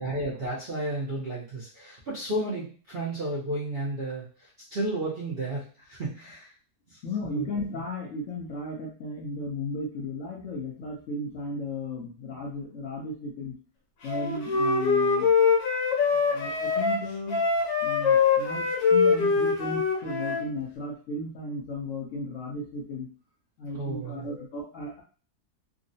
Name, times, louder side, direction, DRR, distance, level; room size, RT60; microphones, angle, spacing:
voice 1, 0.0-6.5 6.9-7.5 23.7-24.3, right 1 dB, 55° right, -7 dB, 0.6 m, -33 dB
voice 2, 7.0-13.5 14.0-15.3 16.1-17.4 17.8-23.1 23.6-25.0, left 2 dB, 65° left, -3 dB, 0.8 m, -35 dB
Wind instrument woodwind instrument, 14.1-20.4, left 5 dB, 85° left, 1.4 m, -23 dB
3.6 x 2.1 x 2.6 m, 0.39 s
omnidirectional pair, 1.8 m